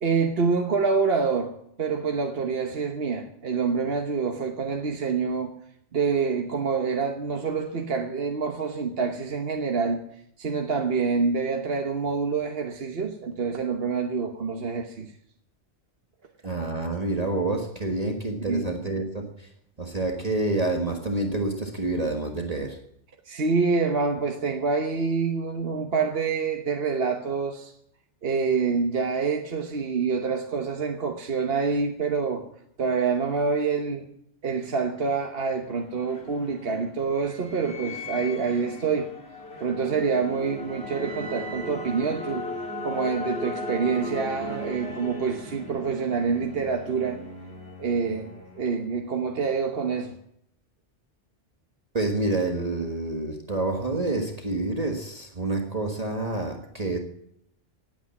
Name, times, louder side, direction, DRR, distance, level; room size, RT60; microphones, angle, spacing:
voice 1, 0.0-5.5 5.9-10.0 10.4-15.1 18.4-18.6 23.3-27.7 28.2-32.5 32.8-34.0 34.4-39.1 39.6-42.4 42.8-47.2 47.8-50.1, right 5 dB, 55° right, 1.3 m, -26 dB
voice 2, 16.4-19.5 19.8-22.8 51.9-57.0, right 2 dB, 35° right, 1.6 m, -28 dB
sound 1, 35.4-49.1, left 1 dB, 55° left, 3.5 m, -37 dB
18.0 x 8.9 x 7.3 m
omnidirectional pair, 1.2 m